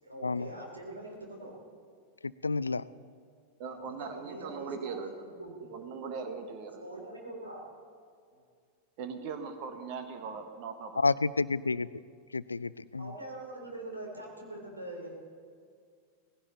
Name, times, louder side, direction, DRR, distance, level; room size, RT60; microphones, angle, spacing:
voice 1, 0.0-1.6 3.6-5.7 6.8-7.6 8.3-8.4 13.0-15.1, right 2 dB, 80° right, 0 dB, 3.4 m, -43 dB
voice 2, 2.2-2.9 11.0-11.9 12.3-13.1, left 4 dB, 80° left, 19 dB, 0.3 m, -30 dB
voice 3, 3.6-5.1 5.7-6.8 9.0-11.0, right 5 dB, 45° right, 6 dB, 1.3 m, -39 dB
18.5 x 16.0 x 4.1 m, 2.2 s
figure-of-eight pair, 90°, 0 cm